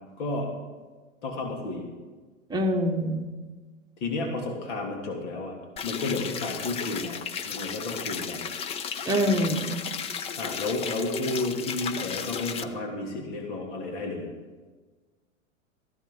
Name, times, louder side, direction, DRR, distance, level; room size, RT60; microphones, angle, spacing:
voice 1, 0.2-0.5 1.2-1.9 4.0-5.5 5.8-7.2 7.4-8.5 10.4-14.3, left 2 dB, 60° left, 1 dB, 3.0 m, -32 dB
voice 2, 2.5-3.3 9.1-9.8, equal, 10° right, 2 dB, 1.2 m, -25 dB
sound 1, 5.8-12.6, left 7 dB, 15° left, 0.4 m, -34 dB
14.0 x 13.0 x 3.9 m, 1.4 s
hypercardioid pair, 110°, 39 cm